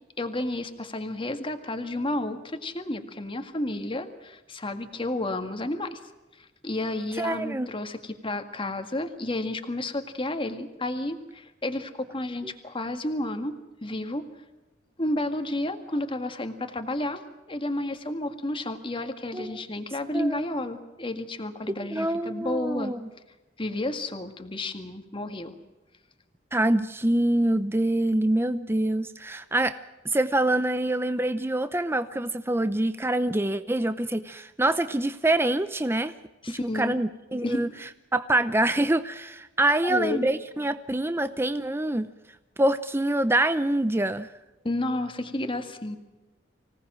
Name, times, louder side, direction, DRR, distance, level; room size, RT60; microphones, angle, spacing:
voice 1, 0.2-6.0 6.4-14.3 15.0-17.2 17.5-22.9 23.6-25.5 36.4-37.0 37.4-37.6 39.8-40.3 44.6-46.0, left 1 dB, 30° left, 7 dB, 1.9 m, -31 dB
voice 2, 7.2-7.7 19.3-19.6 20.1-20.5 21.9-23.1 26.5-29.8 30.0-36.1 36.5-37.7 38.1-42.1 42.6-44.3, right 1 dB, 15° right, 11 dB, 0.7 m, -25 dB
25.0 x 18.0 x 7.6 m, 1.1 s
head